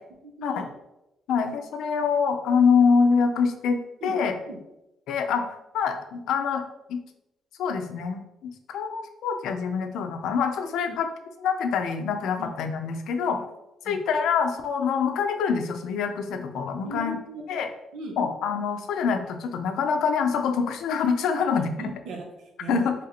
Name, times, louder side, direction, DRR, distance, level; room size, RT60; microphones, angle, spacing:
voice 1, 0.2-0.7 4.0-4.1 4.5-4.6 10.9-11.0 12.4-12.5 13.8-14.0 16.8-17.6 17.9-18.2 21.8-22.9, right 2 dB, 90° right, 1 dB, 0.8 m, -38 dB
voice 2, 1.3-4.4 5.1-6.6 6.9-7.0 7.6-11.1 11.4-13.4 13.8-17.2 17.5-17.7 18.2-21.7 22.7-22.9, left 6 dB, 80° left, 6 dB, 0.5 m, -25 dB
3.2 x 2.7 x 4.1 m, 0.90 s
cardioid pair, 90°, 0 cm